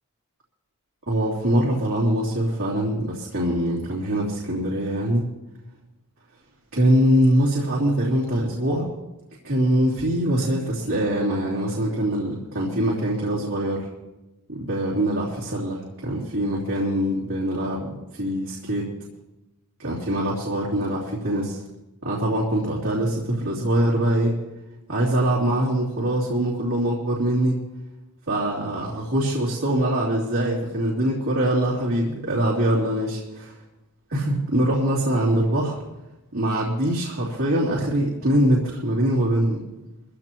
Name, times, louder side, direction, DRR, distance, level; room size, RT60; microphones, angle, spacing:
voice 1, 1.1-5.2 6.7-8.9 9.4-13.9 14.5-18.9 19.8-21.6 22.0-24.4 24.9-27.6 28.3-33.2 34.1-35.8 36.3-39.6, right 1 dB, 65° right, -6 dB, 3.1 m, -23 dB
23.5 x 15.5 x 3.0 m, 1.0 s
head